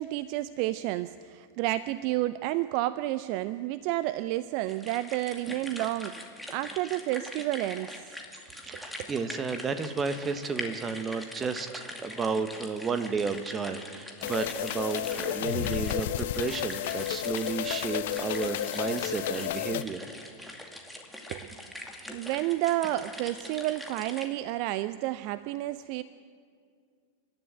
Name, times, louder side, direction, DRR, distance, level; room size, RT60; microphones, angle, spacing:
voice 1, 0.0-8.2 8.7-9.1 21.3-21.5 22.1-26.0, right 16 dB, 45° right, 15 dB, 0.5 m, -31 dB
sound 1, 4.7-24.3, left 1 dB, ahead, 2.4 m, -43 dB
voice 2, 8.6-20.0, right 5 dB, 20° right, 10 dB, 1.3 m, -32 dB
sound 2, 14.2-19.8, left 13 dB, 55° left, 0.7 m, -32 dB
28.0 x 12.5 x 7.7 m, 2.2 s
figure-of-eight pair, 90°, 0 cm